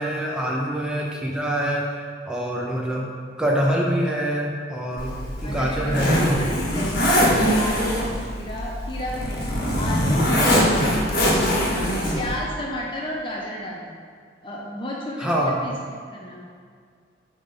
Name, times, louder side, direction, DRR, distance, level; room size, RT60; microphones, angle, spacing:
voice 1, 0.0-1.9 2.3-3.1 3.4-5.1 5.4-6.1 15.2-15.7, equal, 5° right, -3 dB, 0.8 m, -24 dB
Zipper (clothing), 5.0-12.4, equal, 50° left, 1.5 m, -22 dB
voice 2, 5.4-10.5 11.3-14.0 14.4-16.6, left 1 dB, 25° left, -2 dB, 0.5 m, -33 dB
8.4 x 3.6 x 5.3 m, 2.1 s
head